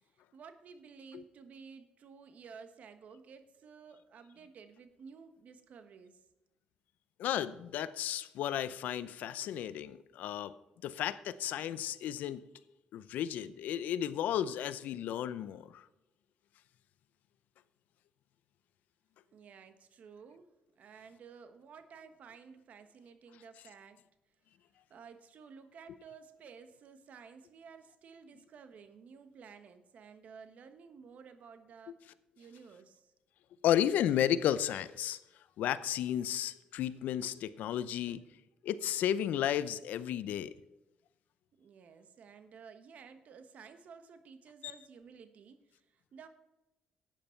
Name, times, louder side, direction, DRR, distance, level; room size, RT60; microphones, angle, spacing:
voice 1, 0.1-6.3 19.3-20.5 20.8-24.0 24.9-32.0 32.4-33.1 41.6-46.3, right 6 dB, 65° right, 9 dB, 1.3 m, -53 dB
voice 2, 7.2-10.5 10.8-12.4 12.9-15.9 33.6-35.2 35.6-38.2 38.6-40.5 44.6-44.7, left 10 dB, 80° left, 15 dB, 0.6 m, -33 dB
12.0 x 9.1 x 4.5 m, 0.99 s
cardioid pair, 80°, 3 cm